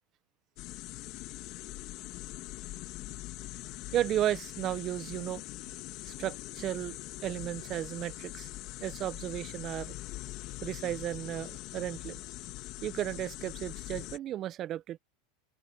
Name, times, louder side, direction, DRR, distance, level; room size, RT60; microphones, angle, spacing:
sound 1, 0.6-14.2, left 19 dB, 55° left, 3.1 m, -43 dB
voice 1, 3.9-5.4 6.0-8.5 8.8-10.0 10.6-12.2 12.8-15.0, right 12 dB, 40° right, 1.0 m, -34 dB
open air
hypercardioid pair, 105°, 0 cm